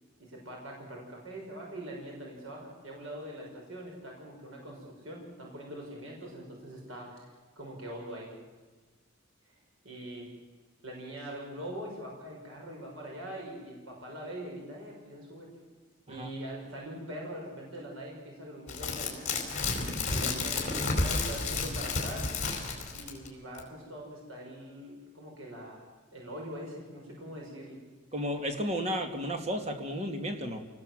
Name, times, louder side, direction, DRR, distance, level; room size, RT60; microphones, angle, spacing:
voice 1, 0.2-7.3 7.6-8.3 9.4-9.6 9.8-10.3 10.8-15.5 16.1-19.3 20.1-22.3 22.9-27.8, right 1 dB, 80° right, -1 dB, 6.2 m, -43 dB
sound 1, 18.7-23.3 23.6-23.7, left 3 dB, 35° left, 4.3 m, -31 dB
voice 2, 28.1-30.6, equal, 30° right, 5 dB, 2.3 m, -33 dB
27.5 x 19.5 x 7.8 m, 1.3 s
head